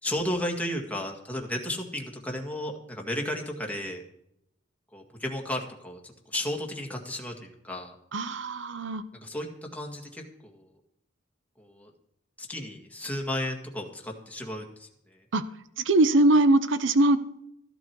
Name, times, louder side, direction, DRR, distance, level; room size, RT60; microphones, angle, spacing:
voice 1, 0.0-4.0 4.9-8.0 9.1-10.7 11.6-11.9 12.4-15.2, left 1 dB, 5° left, 1 dB, 1.9 m, -34 dB
voice 2, 8.1-9.0 15.3-15.4 15.8-17.2, right 2 dB, 65° right, 13 dB, 0.8 m, -21 dB
15.0 x 11.5 x 4.6 m, 0.78 s
head